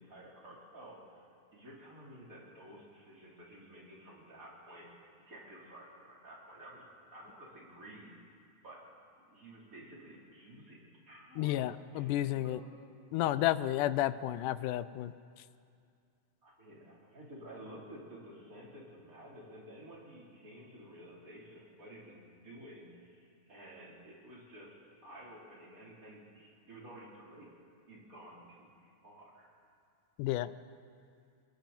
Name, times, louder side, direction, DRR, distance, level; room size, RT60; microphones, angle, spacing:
voice 1, 0.0-8.8 9.3-10.8 11.1-12.7 16.4-24.8 25.0-27.5 27.9-29.5, right 1 dB, 25° right, -5 dB, 4.4 m, -52 dB
voice 2, 11.4-12.6 13.1-15.1 30.2-30.5, left 14 dB, 90° left, 15 dB, 2.2 m, -31 dB
29.0 x 21.5 x 4.5 m, 2.3 s
omnidirectional pair, 3.6 m